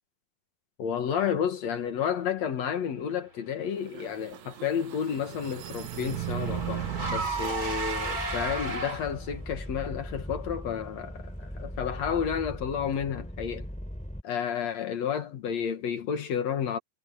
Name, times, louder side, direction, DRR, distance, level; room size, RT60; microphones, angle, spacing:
voice 1, 0.8-13.7 14.2-16.8, left 8 dB, 65° left, 2.6 m, -31 dB
sound 1, 3.8-7.6, right 15 dB, 75° right, 2.0 m, -37 dB
Car / Engine, 4.3-9.3, right 3 dB, 30° right, 3.8 m, -35 dB
sound 2, 6.5-14.2, equal, ahead, 3.2 m, -39 dB
omnidirectional pair, 3.4 m